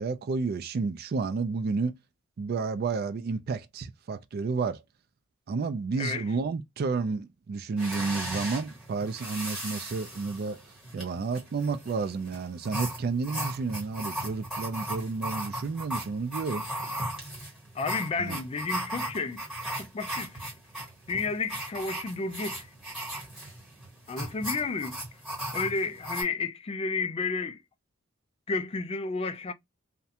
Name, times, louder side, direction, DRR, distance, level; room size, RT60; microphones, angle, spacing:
voice 1, 0.0-1.9 2.4-4.8 5.5-10.6 10.9-16.7 18.2-18.4, right 4 dB, 50° right, 0.3 m, -31 dB
voice 2, 6.0-6.3 17.7-19.4 19.7-20.4 21.1-22.7 24.1-25.0 25.5-27.6 28.5-29.5, left 4 dB, 30° left, 0.3 m, -31 dB
sound 1, 7.8-26.2, right 1 dB, ahead, 1.4 m, -37 dB
2.4 x 2.1 x 2.7 m
head